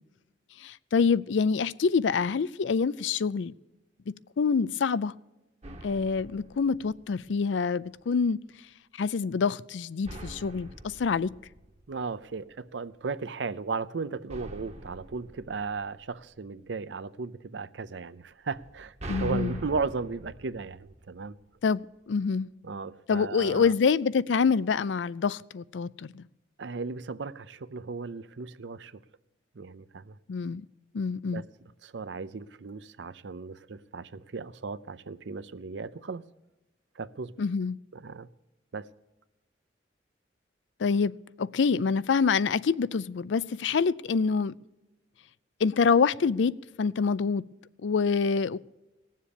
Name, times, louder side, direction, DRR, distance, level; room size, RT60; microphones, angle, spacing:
voice 1, 0.6-3.5 4.4-5.1 5.8-8.4 9.0-11.3 19.1-19.6 21.6-21.8 22.1-22.5 23.1-26.3 30.3-30.7 30.9-31.4 37.4-37.8 40.8-41.1 41.4-44.5 45.6-47.4 47.8-48.6, left 5 dB, 85° left, 0.4 m, -26 dB
sound 1, 5.6-7.5 10.0-12.5 14.3-16.6 18.5-21.6, right 1 dB, 35° right, 1.0 m, -44 dB
voice 2, 11.9-21.4 22.6-23.7 26.6-28.9 29.6-30.2 31.3-31.5 31.8-36.2 37.0-37.3 37.9-38.3 38.7-38.9, right 4 dB, 75° right, 0.6 m, -36 dB
18.5 x 7.5 x 8.5 m
head